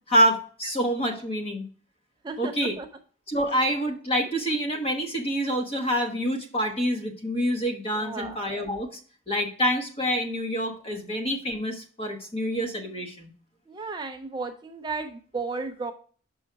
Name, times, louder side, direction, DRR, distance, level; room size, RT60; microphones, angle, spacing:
voice 1, 0.1-1.7 2.4-2.7 3.3-9.0 9.3-13.3, equal, 30° left, 4 dB, 1.1 m, -27 dB
voice 2, 2.2-2.9 8.0-8.4 10.9-11.0 13.7-15.9, right 3 dB, 20° right, 6 dB, 0.4 m, -34 dB
6.2 x 5.3 x 4.5 m, 0.42 s
head